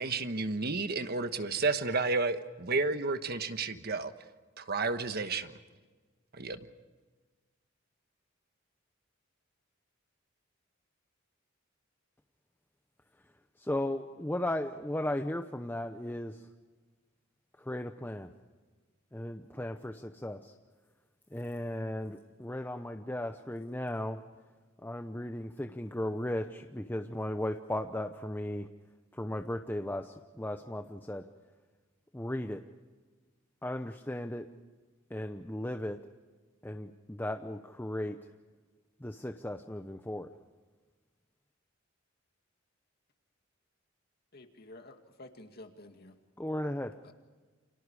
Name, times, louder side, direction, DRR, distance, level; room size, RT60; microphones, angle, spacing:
voice 1, 0.0-4.1 4.6-5.5 6.3-6.6, right 3 dB, 55° right, 9 dB, 1.3 m, -31 dB
voice 2, 13.6-16.5 17.6-18.3 19.1-20.5 21.3-24.2 24.8-28.7 29.1-31.2 32.1-32.6 33.6-34.5 35.1-36.0 36.6-38.2 39.0-40.3 46.4-46.9, left 1 dB, 10° left, 6 dB, 0.8 m, -36 dB
voice 3, 44.3-46.1 47.0-47.1, left 1 dB, 55° left, 5 dB, 2.3 m, -51 dB
29.0 x 26.5 x 4.9 m, 1.4 s
head